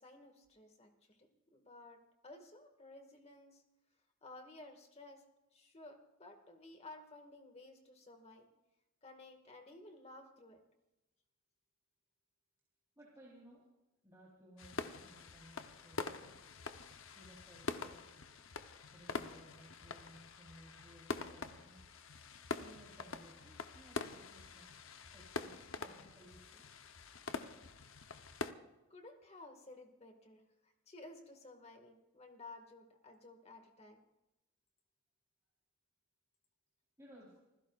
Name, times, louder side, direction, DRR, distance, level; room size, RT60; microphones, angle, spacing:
voice 1, 0.0-2.0 2.2-3.6 4.2-5.2 5.5-8.5 9.0-10.6 27.4-27.5 28.9-34.0, left 2 dB, 30° left, 5 dB, 1.9 m, -55 dB
voice 2, 13.0-13.7 14.0-16.5 16.8-18.1 18.9-21.8 22.6-24.7 25.1-26.7 37.0-37.4, right 1 dB, 15° right, -6 dB, 3.8 m, -60 dB
sound 1, 14.6-28.5, left 4 dB, 60° left, 0.9 m, -45 dB
26.5 x 16.0 x 2.5 m, 0.99 s
head